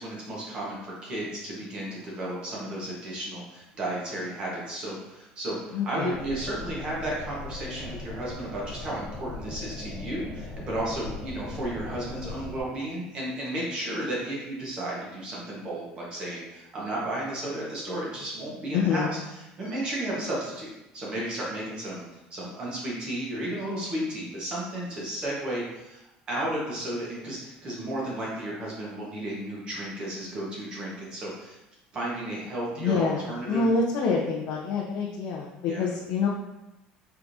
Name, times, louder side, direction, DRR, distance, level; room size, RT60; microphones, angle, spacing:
voice 1, 0.0-19.2 19.6-26.0 26.3-31.6 31.9-33.6 35.7-35.9, right 1 dB, 30° right, -5 dB, 1.2 m, -33 dB
voice 2, 5.7-6.2 18.7-19.1 32.8-33.2 33.5-36.3, left 4 dB, 55° left, -3 dB, 0.5 m, -26 dB
sound 1, 6.1-12.6, left 2 dB, 20° left, 1.3 m, -39 dB
4.5 x 3.5 x 2.7 m, 0.93 s
cardioid pair, 180°, 3 cm